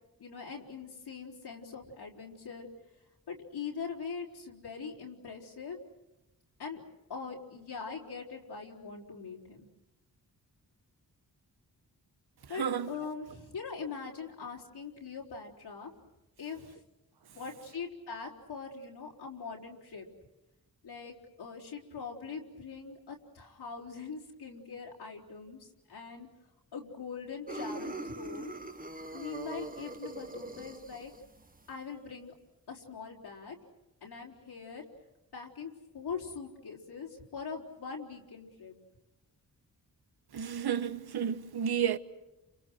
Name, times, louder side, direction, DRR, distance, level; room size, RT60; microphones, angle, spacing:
voice 1, 0.2-2.7 3.3-5.8 6.6-6.8 7.1-9.7 12.5-15.9 16.4-16.8 17.3-20.1 20.8-26.3 26.7-28.5 29.1-31.1 31.7-32.3 32.7-33.6 34.0-34.8 35.3-38.7, left 5 dB, 90° left, 4.4 m, -42 dB
voice 2, 12.5-13.0 40.3-42.0, right 8 dB, 75° right, 1.3 m, -31 dB
sound 1, 27.5-31.7, right 2 dB, 20° right, 1.4 m, -42 dB
30.0 x 27.5 x 6.3 m
cardioid pair, 50°, 39 cm